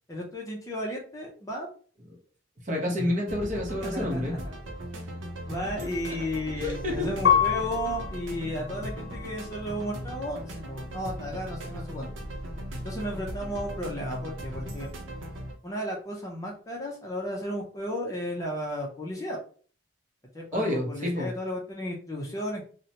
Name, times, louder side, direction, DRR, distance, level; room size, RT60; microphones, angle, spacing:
voice 1, 0.1-1.7 3.0-3.1 3.8-4.5 5.5-12.1 12.8-14.9 15.6-19.4 20.3-22.7, equal, 15° left, -1 dB, 0.5 m, -34 dB
voice 2, 2.7-4.3 5.8-5.9 6.2-6.3 6.6-7.1 20.5-21.3, left 1 dB, 40° right, 0 dB, 0.7 m, -29 dB
sound 1, 3.3-15.5, equal, 85° right, 0.6 m, -38 dB
Piano, 7.2-10.0 10.6-11.3, left 9 dB, 60° left, 0.6 m, -29 dB
2.8 x 2.1 x 2.8 m, 0.42 s
head